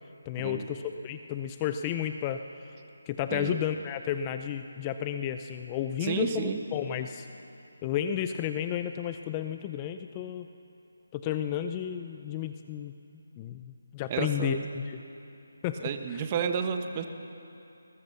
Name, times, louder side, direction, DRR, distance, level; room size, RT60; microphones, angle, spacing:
voice 1, 0.3-2.4 3.1-7.3 7.8-10.5 11.1-12.9 13.4-15.0 15.6-16.2, left 10 dB, 20° left, 8 dB, 0.6 m, -32 dB
voice 2, 6.0-6.6 14.1-14.7 15.8-17.1, right 7 dB, 25° right, 7 dB, 1.3 m, -31 dB
22.0 x 19.5 x 6.8 m, 2.8 s
figure-of-eight pair, 165°, 0 cm